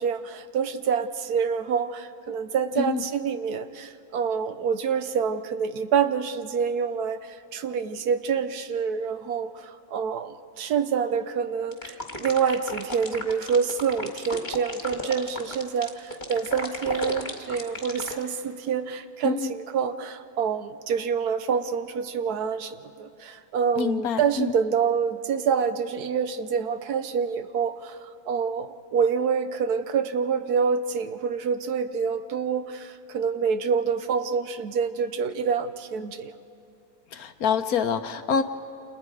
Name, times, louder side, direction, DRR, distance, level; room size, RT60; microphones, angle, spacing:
voice 1, 0.0-36.3, right 6 dB, 65° right, 10 dB, 1.3 m, -27 dB
sound 1, 11.7-18.2, left 2 dB, 25° left, 2.1 m, -34 dB
voice 2, 23.7-24.6 37.1-38.4, left 6 dB, 65° left, 8 dB, 1.3 m, -26 dB
29.0 x 27.5 x 4.9 m, 2.8 s
omnidirectional pair, 1.8 m